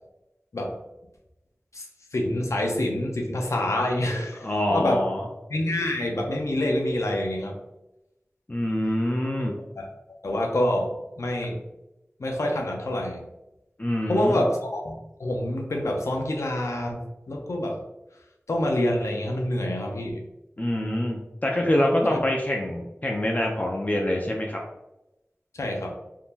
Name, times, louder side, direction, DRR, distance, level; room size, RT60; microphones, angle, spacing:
voice 1, 2.1-5.0 5.5-7.6 9.4-9.5 9.8-9.9 10.2-11.6 12.2-13.2 14.1-17.0 17.3-17.8 18.5-20.2 22.1-22.2 25.5-26.0, left 1 dB, 85° left, 1 dB, 0.5 m, -26 dB
voice 2, 4.4-5.2 8.5-9.5 13.8-14.5 20.6-24.6, left 1 dB, 35° left, -1 dB, 0.5 m, -25 dB
3.6 x 2.7 x 2.4 m, 0.95 s
wide cardioid pair, 40°, 5 cm